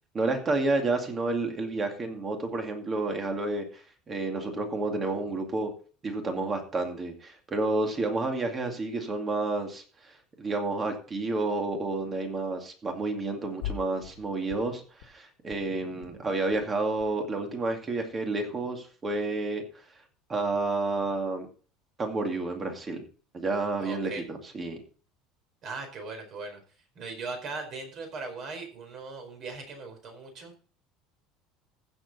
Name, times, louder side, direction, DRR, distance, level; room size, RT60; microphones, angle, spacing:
voice 1, 0.1-5.7 6.0-19.6 20.3-21.5 22.0-23.0 23.3-24.8, right 2 dB, 20° right, 4 dB, 2.3 m, -30 dB
sound 1, 13.6-14.2 14.5-15.1 15.4-15.6 15.9-16.1 16.4-17.2 17.4-18.4, left 11 dB, 85° left, 1.9 m, -42 dB
voice 2, 23.8-24.2 25.6-26.6 26.9-30.5, right 3 dB, 40° right, 4 dB, 4.7 m, -39 dB
15.0 x 7.3 x 4.2 m, 0.39 s
cardioid pair, 160°, 0 cm